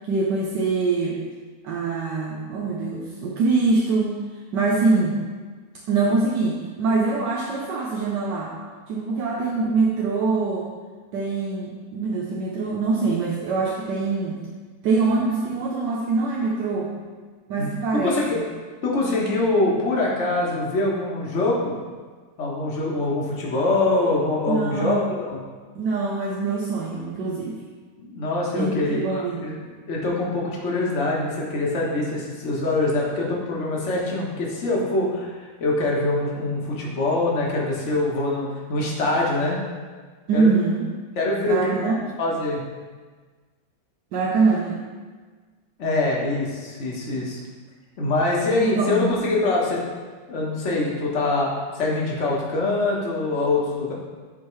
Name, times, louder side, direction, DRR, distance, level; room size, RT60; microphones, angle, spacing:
voice 1, 0.1-1.2 1.6-4.2 4.5-5.2 5.9-8.5 8.9-10.7 11.1-14.4 14.8-16.9 17.5-18.4 24.5-25.1 25.8-27.6 28.5-29.5 40.3-40.8 41.5-41.9 44.1-44.8 48.6-49.1, right 3 dB, 75° right, -3 dB, 1.4 m, -24 dB
voice 2, 17.6-18.4 18.8-21.7 22.4-25.4 28.0-39.6 40.3-40.5 41.2-41.6 42.2-42.6 45.8-47.4 48.0-49.8 50.3-53.9, left 2 dB, 45° left, -3 dB, 1.5 m, -24 dB
10.0 x 4.5 x 3.2 m, 1.5 s
omnidirectional pair, 1.9 m